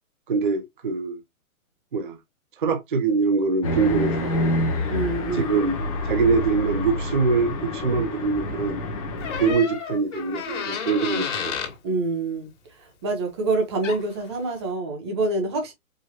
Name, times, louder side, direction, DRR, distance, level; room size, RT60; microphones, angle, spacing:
voice 1, 0.3-1.2 1.9-2.2 2.6-4.5 5.3-5.7 6.0-8.8 9.3-11.6, right 4 dB, 40° right, 0.5 m, -23 dB
sound 1, 3.6-9.5, left 1 dB, 25° left, 0.8 m, -27 dB
voice 2, 4.9-5.5 11.8-12.5 12.8-15.7, right 2 dB, 20° right, 0.9 m, -26 dB
Door, 9.2-11.8 13.5-13.6 13.8-14.2, left 7 dB, 55° left, 1.8 m, -31 dB
4.8 x 2.9 x 2.8 m
hypercardioid pair, 175°, 43 cm